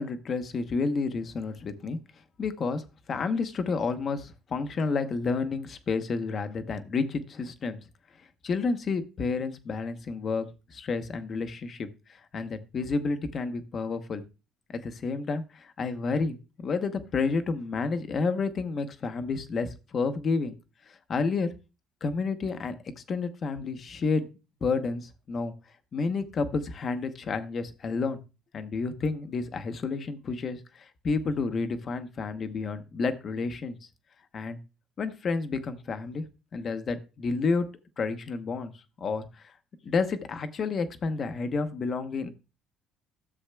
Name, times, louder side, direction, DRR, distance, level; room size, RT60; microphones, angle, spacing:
voice 1, 0.0-2.0 2.4-2.8 3.1-7.8 8.4-11.9 12.3-14.2 14.7-16.4 16.6-20.6 21.1-21.5 22.0-22.8 23.1-24.3 24.6-25.5 25.9-28.2 28.5-33.8 34.3-34.6 35.0-36.2 36.5-37.7 38.0-38.7 39.0-39.2 39.8-42.3, left 4 dB, 35° left, 9 dB, 0.8 m, -30 dB
13.0 x 7.1 x 2.2 m, 0.29 s
cardioid pair, 150°, 0 cm